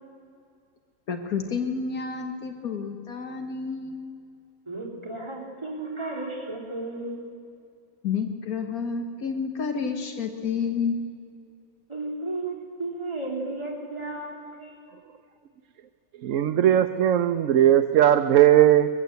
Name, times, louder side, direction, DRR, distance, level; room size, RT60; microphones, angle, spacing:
voice 1, 1.1-4.1 8.0-11.0, left 5 dB, 80° left, 5 dB, 1.8 m, -30 dB
voice 2, 4.7-7.2 11.9-14.8, right 2 dB, 20° right, -4 dB, 3.7 m, -34 dB
voice 3, 16.2-18.9, right 11 dB, 65° right, 8 dB, 1.0 m, -18 dB
21.5 x 15.5 x 8.1 m, 2.3 s
omnidirectional pair, 1.5 m